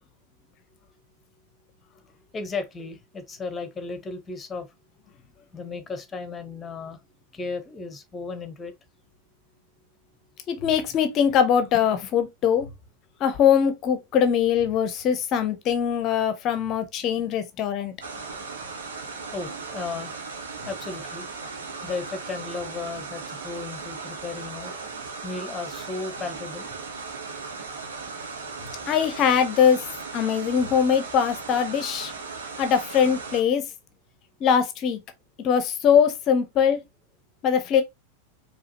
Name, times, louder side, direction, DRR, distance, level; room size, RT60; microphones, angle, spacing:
voice 1, 2.3-4.7 5.5-7.0 7.3-8.7 19.3-20.1 20.7-21.3 21.8-24.8 25.2-26.7, left 4 dB, 15° left, 0.9 m, -35 dB
voice 2, 10.5-12.7 13.2-17.9 28.9-29.8 30.1-32.1 32.6-33.6 34.4-35.0 35.4-36.8 37.4-37.8, left 8 dB, 35° left, 0.7 m, -22 dB
sound 1, 18.0-33.4, right 4 dB, 65° right, 1.1 m, -37 dB
4.9 x 3.0 x 2.9 m
figure-of-eight pair, 90°, 0 cm